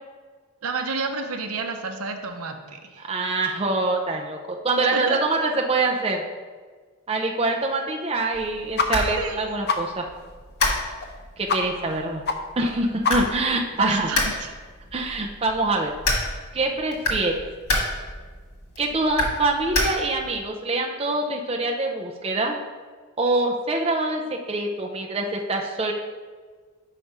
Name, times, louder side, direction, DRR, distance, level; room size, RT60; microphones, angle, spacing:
voice 1, 0.6-3.1 4.9-5.2 9.2-9.5 13.8-14.5, right 4 dB, 75° right, 5 dB, 0.7 m, -30 dB
voice 2, 3.1-6.2 7.1-10.1 11.4-12.2 12.6-14.1 14.9-15.9 16.5-17.4 18.8-22.6 23.2-25.9, right 2 dB, 25° right, 1 dB, 0.5 m, -25 dB
sound 1, 8.3-20.4, left 1 dB, 85° left, 1.6 m, -30 dB
sound 2, 8.8-8.9 9.2-9.3 9.7-9.8 10.2-10.3 10.6-10.7 11.0-11.1 11.5-11.6 11.9-12.0 12.3-12.4 12.7-12.8 13.0-13.4, left 4 dB, 45° left, 0.6 m, -24 dB
5.9 x 4.9 x 5.4 m, 1.5 s
head